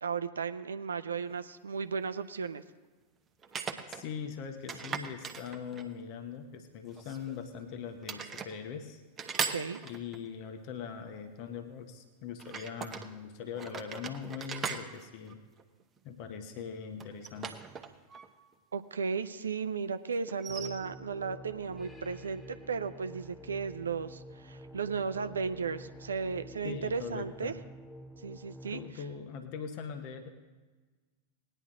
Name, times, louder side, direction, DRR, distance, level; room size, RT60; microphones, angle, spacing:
voice 1, 0.0-2.6 9.5-9.8 18.7-27.5 28.2-28.8, right 5 dB, 70° right, 11 dB, 0.5 m, -35 dB
sound 1, 1.3-1.4 3.4-4.0 4.7-6.0 7.0-7.7 8.0-8.5 9.2-10.3 12.4-13.1 13.6-16.0 17.0-18.3 18.5-18.6 20.3-20.7, right 5 dB, 20° right, 0.9 m, -39 dB
voice 2, 3.9-9.0 9.8-15.4 16.0-17.6 26.6-27.6 28.7-30.3, left 7 dB, 45° left, 7 dB, 1.0 m, -41 dB
sound 2, 20.5-28.9, equal, 10° left, 0.8 m, -49 dB
18.5 x 10.0 x 3.7 m, 1.3 s
figure-of-eight pair, 90°, 0 cm